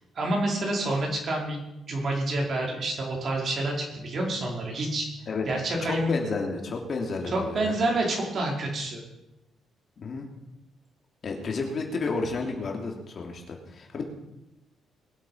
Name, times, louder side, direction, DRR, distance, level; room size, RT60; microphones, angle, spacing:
voice 1, 0.1-1.6 1.9-5.1 5.4-6.2 7.3-9.0, right 2 dB, 50° right, -1 dB, 5.0 m, -28 dB
voice 2, 5.8-7.7 10.0-10.3 11.2-14.0, left 3 dB, 50° left, 1 dB, 3.1 m, -31 dB
21.5 x 8.0 x 5.7 m, 0.91 s
cardioid pair, 90°, 0 cm